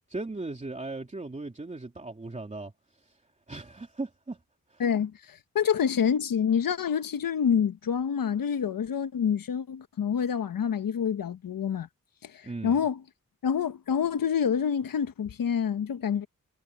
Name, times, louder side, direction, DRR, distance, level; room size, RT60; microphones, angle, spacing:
voice 1, 0.1-2.7 3.0-3.2 3.5-4.4 4.7-4.8 12.4-12.8, right 2 dB, 20° right, 3.2 m, -37 dB
voice 2, 4.8-11.9 12.2-13.0 13.4-16.3, left 7 dB, 85° left, 1.2 m, -27 dB
wide cardioid pair, 165°, 33 cm